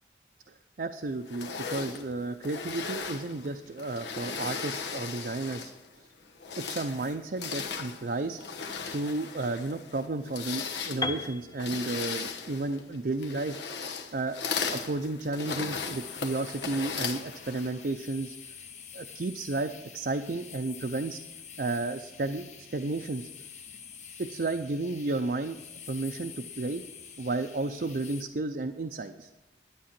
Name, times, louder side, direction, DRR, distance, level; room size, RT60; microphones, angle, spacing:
voice 1, 0.5-5.7 6.0-6.1 6.6-8.4 8.9-13.6 14.1-14.4 14.7-18.4 18.9-21.2 21.6-23.2 24.2-25.6 25.9-26.8 27.2-29.3, right 2 dB, 55° right, 5 dB, 0.5 m, -32 dB
sound 1, 1.3-5.9 6.3-17.8, left 5 dB, 85° left, 1.2 m, -37 dB
Piano, 11.0-14.9, left 3 dB, 20° left, 0.6 m, -39 dB
sound 2, 15.7-28.2, left 7 dB, 40° left, 0.9 m, -47 dB
11.5 x 9.8 x 5.9 m, 0.94 s
head